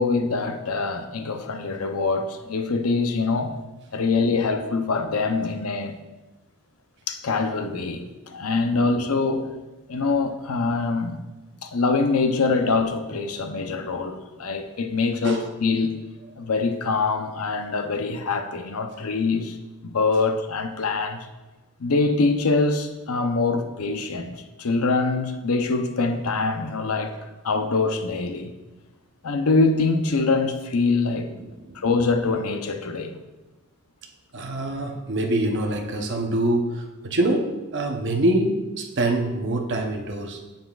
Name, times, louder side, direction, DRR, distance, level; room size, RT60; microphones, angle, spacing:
voice 1, 0.0-3.5 3.9-6.0 7.1-9.5 9.9-11.2 11.6-16.0 16.4-19.6 19.8-21.3 21.8-27.1 27.4-28.5 29.2-31.3 31.7-33.1, left 3 dB, 85° left, 7 dB, 0.7 m, -24 dB
voice 2, 31.4-31.8 34.3-40.4, right 1 dB, 55° right, 2 dB, 0.9 m, -25 dB
9.0 x 7.4 x 2.4 m, 1.1 s
head